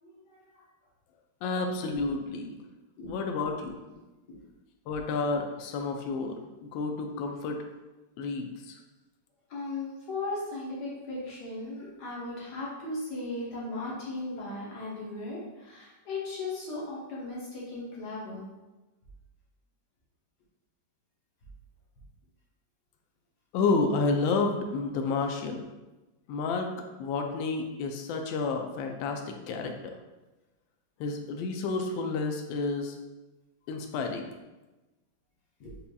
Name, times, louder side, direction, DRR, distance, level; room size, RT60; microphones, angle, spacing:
voice 1, 0.0-0.6 3.0-3.1 9.5-18.5 35.6-35.7, left 2 dB, 60° left, -6 dB, 1.7 m, -37 dB
voice 2, 1.4-2.6 3.1-3.8 4.9-7.6 8.2-8.8 23.5-25.7 26.3-26.7 27.0-29.9 31.0-33.0 33.7-34.3, left 3 dB, 85° left, 3 dB, 1.3 m, -30 dB
5.4 x 3.4 x 2.3 m, 1.1 s
omnidirectional pair, 2.1 m